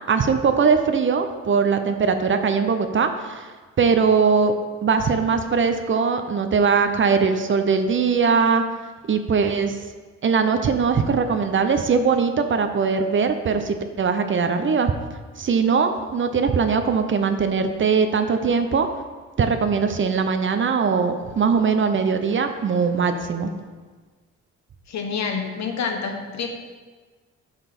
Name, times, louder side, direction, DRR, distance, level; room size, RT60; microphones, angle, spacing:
voice 1, 0.1-3.5 3.8-4.5 4.8-8.6 9.1-9.8 10.2-14.9 15.4-18.9 19.4-23.5, right 5 dB, 40° right, 8 dB, 0.7 m, -21 dB
voice 2, 24.9-26.5, left 5 dB, 65° left, 3 dB, 1.2 m, -27 dB
9.0 x 4.2 x 5.2 m, 1.4 s
cardioid pair, 90°, 30 cm